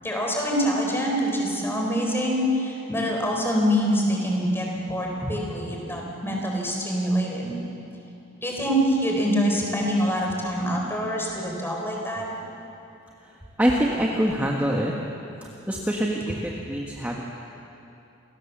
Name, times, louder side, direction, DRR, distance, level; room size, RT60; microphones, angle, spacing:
voice 1, 0.0-7.5 8.4-12.3, equal, 10° left, -1 dB, 4.3 m, -25 dB
voice 2, 13.2-14.9 15.4-17.2, equal, 10° right, -2 dB, 1.5 m, -25 dB
28.5 x 18.5 x 7.3 m, 2.9 s
head